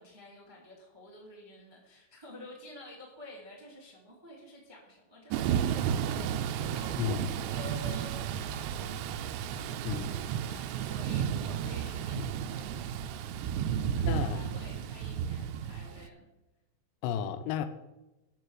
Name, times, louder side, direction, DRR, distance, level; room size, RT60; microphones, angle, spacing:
voice 1, 0.0-16.3, left 1 dB, 10° right, 1.2 m, -50 dB
Thunder / Rain, 5.3-16.1, right 9 dB, 90° right, 2.9 m, -33 dB
voice 2, 7.0-7.3 9.9-10.1 14.0-14.4 17.0-17.7, left 9 dB, 85° left, 3.0 m, -32 dB
12.5 x 5.9 x 6.4 m
omnidirectional pair, 4.9 m